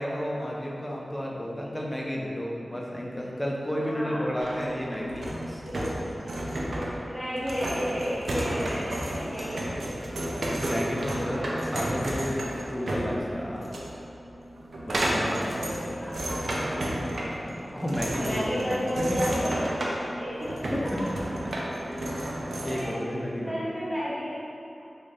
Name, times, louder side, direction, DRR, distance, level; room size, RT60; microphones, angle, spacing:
voice 1, 0.0-5.6 9.1-9.3 10.3-13.7 14.8-15.5 17.4-18.8 19.1-19.4 20.7-21.0 21.8-23.6, equal, 10° left, -3 dB, 0.5 m, -32 dB
voice 2, 3.8-4.4 5.6-6.0 7.0-9.9 15.0-17.5 18.2-19.7 20.1-21.1 22.6-22.9 23.4-24.4, equal, 10° right, -9 dB, 0.9 m, -33 dB
sound 1, 4.4-22.8, right 1 dB, 75° right, 0.4 m, -32 dB
3.7 x 2.1 x 3.4 m, 2.8 s
wide cardioid pair, 75°, 0 cm